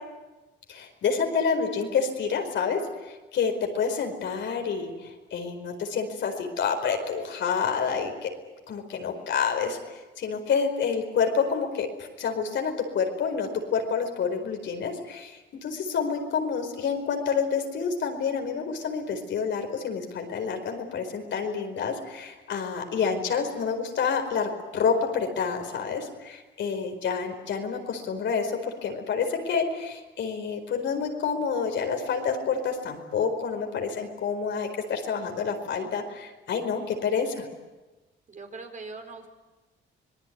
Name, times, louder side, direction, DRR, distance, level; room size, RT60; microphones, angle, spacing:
voice 1, 0.7-8.3 8.7-37.5, left 6 dB, 70° left, 4 dB, 4.7 m, -28 dB
voice 2, 38.3-39.3, right 3 dB, 40° right, 4 dB, 4.6 m, -41 dB
26.0 x 20.0 x 9.5 m, 1.2 s
cardioid pair, 90°, 20 cm